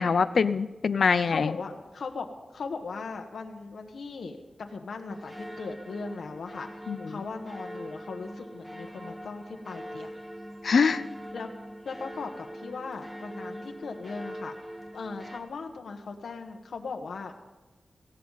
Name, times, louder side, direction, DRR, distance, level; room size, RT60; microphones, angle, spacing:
voice 1, 0.0-1.5 6.9-7.2 10.6-11.0, left 5 dB, 70° left, 14 dB, 0.6 m, -24 dB
voice 2, 1.3-6.7 7.1-10.1 11.3-11.5 11.8-14.5 14.9-17.3, left 4 dB, 90° left, 4 dB, 1.3 m, -38 dB
sound 1, 5.1-15.4, equal, 5° right, 1.3 m, -42 dB
18.0 x 15.5 x 4.0 m, 1.2 s
wide cardioid pair, 110°, 0 cm